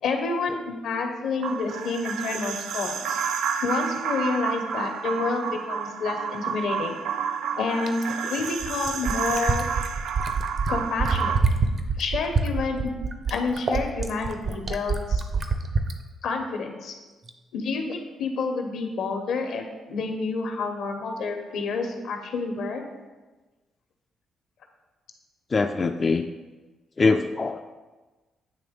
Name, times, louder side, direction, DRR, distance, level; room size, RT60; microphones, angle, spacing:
voice 1, 0.0-3.2 3.6-7.0 7.5-9.7 10.7-11.4 12.0-13.0 13.3-15.2 16.2-16.9 17.5-22.8, left 4 dB, 80° left, 4 dB, 1.0 m, -29 dB
sound 1, 1.4-11.4, right 7 dB, 80° right, 0.3 m, -30 dB
Fill (with liquid), 7.9-16.0 17.3-17.4, right 4 dB, 50° right, 0.7 m, -26 dB
voice 2, 25.5-26.3 27.0-27.6, left 4 dB, 35° left, 5 dB, 0.3 m, -22 dB
8.9 x 3.1 x 5.2 m, 1.2 s
cardioid pair, 75°, 0 cm